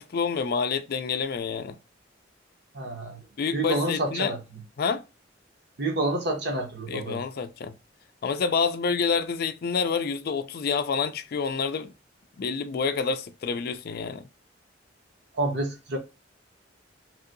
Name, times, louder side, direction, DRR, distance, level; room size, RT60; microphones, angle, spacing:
voice 1, 0.0-1.8 3.4-4.4 4.8-5.0 6.9-7.7 8.2-11.9 12.4-14.3, left 5 dB, 55° left, 0.4 m, -28 dB
voice 2, 2.7-3.2 3.5-4.4 5.8-7.2 15.3-16.0, right 2 dB, 65° right, 1.0 m, -28 dB
3.0 x 2.7 x 2.5 m
head